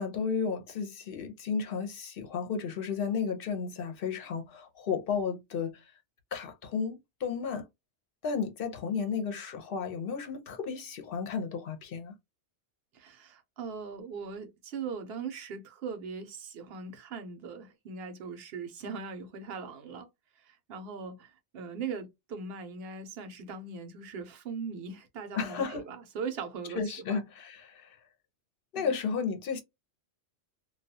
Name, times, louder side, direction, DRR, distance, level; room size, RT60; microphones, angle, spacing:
voice 1, 0.0-5.8 6.3-7.6 8.2-12.1 25.3-25.9 26.8-28.0 28.7-29.6, left 6 dB, 60° left, 0.8 m, -33 dB
voice 2, 12.9-20.1 20.5-26.8 27.1-27.2 28.8-28.9, right 5 dB, 65° right, 0.8 m, -40 dB
2.3 x 2.3 x 2.6 m
omnidirectional pair, 1.2 m